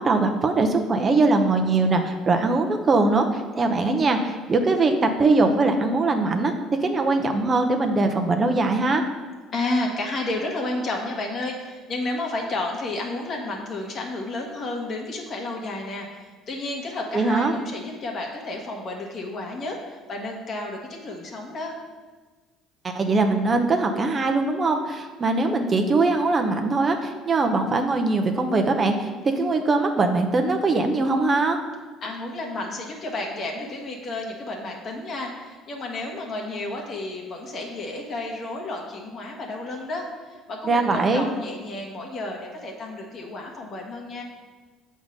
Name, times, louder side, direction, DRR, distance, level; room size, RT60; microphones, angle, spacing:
voice 1, 0.0-9.0 17.1-17.5 22.8-31.6 40.6-41.3, right 3 dB, 35° right, 5 dB, 0.8 m, -21 dB
voice 2, 9.5-21.7 32.0-44.2, left 2 dB, 50° left, 0 dB, 1.5 m, -31 dB
7.2 x 3.7 x 5.2 m, 1.3 s
supercardioid pair, 70°, 0 cm